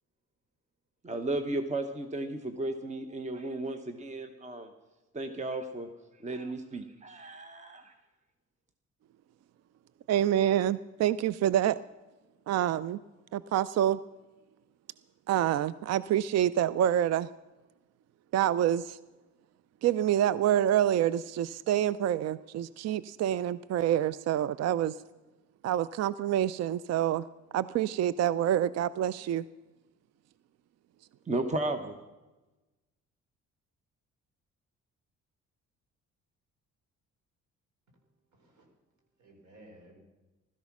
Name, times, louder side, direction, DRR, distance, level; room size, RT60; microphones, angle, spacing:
voice 1, 1.0-4.7 5.1-5.9 6.1-7.9 31.3-32.0, right 2 dB, 25° right, 8 dB, 1.0 m, -34 dB
voice 2, 10.1-11.8 12.5-13.0 13.3-14.0 15.3-17.3 18.3-19.0 19.8-25.0 25.6-27.2 27.5-29.4, right 11 dB, 60° right, 18 dB, 0.4 m, -27 dB
voice 3, 37.9-40.0, right 1 dB, 75° right, 2 dB, 4.4 m, -58 dB
15.5 x 13.0 x 6.0 m, 1.1 s
cardioid pair, 90°, 30 cm